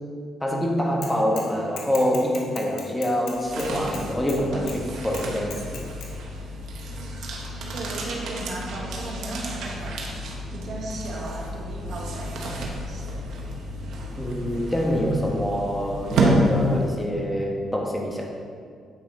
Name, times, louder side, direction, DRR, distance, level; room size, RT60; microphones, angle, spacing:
voice 1, 0.4-5.8 14.2-18.3, equal, 10° left, 0 dB, 1.2 m, -25 dB
Bicycle / Mechanisms, 1.0-1.5 1.8-4.4 4.7-4.8 5.1-6.1, left 5 dB, 80° left, 1.2 m, -39 dB
sound 1, 3.3-17.2, right 1 dB, 75° right, 1.3 m, -30 dB
voice 2, 7.7-13.1, right 2 dB, 60° right, -1 dB, 1.5 m, -36 dB
8.7 x 5.7 x 4.2 m, 2.2 s
cardioid pair, 90°, 0 cm